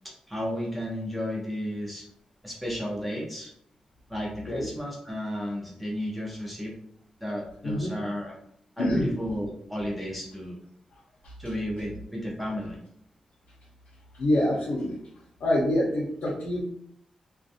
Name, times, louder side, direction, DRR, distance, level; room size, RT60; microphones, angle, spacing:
voice 1, 0.0-2.0 2.4-3.5 4.1-6.7 7.2-8.3 8.8-10.6 11.4-12.8, equal, ahead, -3 dB, 0.6 m, -33 dB
voice 2, 8.8-9.1 11.2-11.5 14.1-15.0 15.4-16.6, left 1 dB, 85° left, -7 dB, 0.7 m, -26 dB
2.5 x 2.2 x 2.6 m, 0.69 s
wide cardioid pair, 175°, 2 cm